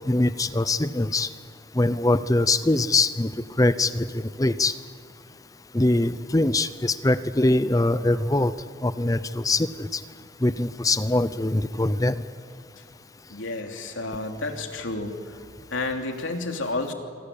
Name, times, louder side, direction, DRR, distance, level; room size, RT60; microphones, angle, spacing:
voice 1, 0.1-1.3 1.7-3.3 3.6-4.7 5.7-8.5 8.8-10.0 10.4-12.2, left 2 dB, 20° left, 14 dB, 0.6 m, -23 dB
voice 2, 13.3-15.1 15.7-16.9, left 2 dB, 90° left, 4 dB, 3.1 m, -30 dB
28.0 x 24.5 x 8.5 m, 2.2 s
head